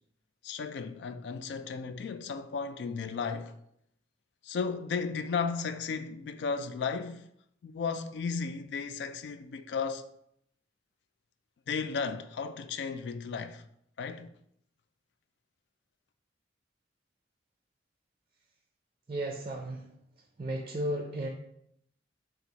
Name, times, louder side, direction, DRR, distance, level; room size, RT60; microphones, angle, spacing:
voice 1, 0.4-3.5 4.4-7.3 7.6-10.1 11.7-13.6 14.0-14.3, left 5 dB, 70° left, 0.3 m, -34 dB
voice 2, 19.1-19.8 20.4-21.3, right 1 dB, 30° right, 0.4 m, -34 dB
3.9 x 2.4 x 4.5 m
head